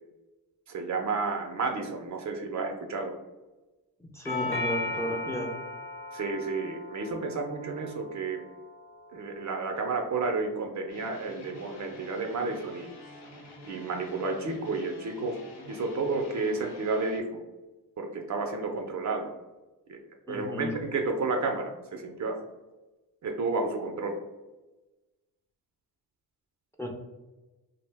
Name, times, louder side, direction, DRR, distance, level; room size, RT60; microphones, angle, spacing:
voice 1, 0.7-3.1 6.1-8.4 9.1-12.9 13.6-15.4 15.7-17.3 18.0-19.3 19.9-20.0 20.3-22.4 23.2-24.2, right 3 dB, 45° right, 3 dB, 0.5 m, -31 dB
voice 2, 4.1-5.5 20.3-20.7 26.8-26.9, equal, 5° left, 1 dB, 0.5 m, -33 dB
Doorbell, 4.2-12.3, left 2 dB, 30° left, 1.0 m, -39 dB
sound 1, 10.9-17.2, left 1 dB, 70° left, 0.7 m, -48 dB
2.5 x 2.0 x 3.3 m, 1.1 s
supercardioid pair, 50°, 40 cm